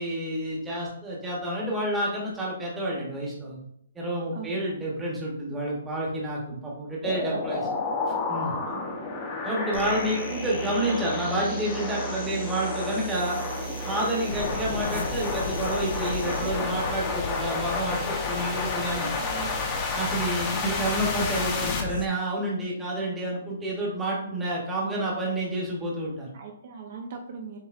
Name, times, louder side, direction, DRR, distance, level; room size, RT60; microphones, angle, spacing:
voice 1, 0.0-3.6 3.9-7.6 8.3-8.5 9.4-13.4 13.8-19.1 19.9-26.3, right 1 dB, 10° right, -4 dB, 1.0 m, -29 dB
voice 2, 4.3-4.8 7.3-7.7 8.6-8.9 16.2-16.7 17.2-17.3 19.2-19.6 20.5-20.7 24.8-25.0 26.3-27.6, right 5 dB, 45° right, 2 dB, 0.6 m, -41 dB
sound 1, 7.0-21.8, left 3 dB, 20° left, 0.7 m, -31 dB
sound 2, 9.7-16.5, right 5 dB, 90° right, 0.9 m, -38 dB
sound 3, 14.3-22.1, left 7 dB, 55° left, 0.3 m, -36 dB
7.4 x 2.9 x 2.4 m, 0.73 s
hypercardioid pair, 170°, 0 cm